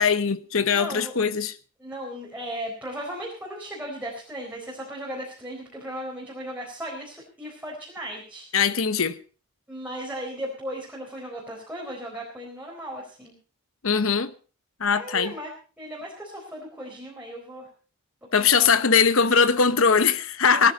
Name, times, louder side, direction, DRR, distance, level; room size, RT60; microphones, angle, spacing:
voice 1, 0.0-1.5 8.5-9.2 13.8-14.3 14.8-15.3 18.3-20.7, left 6 dB, 70° left, 1.0 m, -21 dB
voice 2, 0.7-1.1 1.8-8.5 9.7-13.3 14.9-15.5 15.8-17.7 18.4-18.7 20.5-20.7, right 1 dB, 10° right, 4.2 m, -36 dB
18.0 x 14.0 x 4.1 m
head